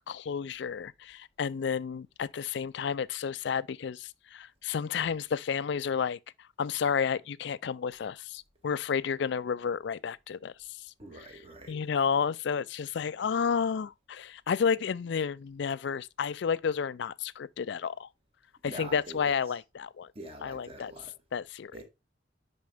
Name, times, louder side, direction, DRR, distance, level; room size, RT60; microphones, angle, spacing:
voice 1, 0.1-6.2 6.6-10.5 11.2-11.3 11.7-18.1 18.6-20.1 20.4-20.9 21.3-21.8, left 6 dB, 65° left, 0.4 m, -31 dB
voice 2, 11.0-11.8 18.6-19.3 20.1-21.1 21.7-21.8, right 1 dB, 30° right, 1.7 m, -45 dB
10.5 x 4.3 x 3.5 m
head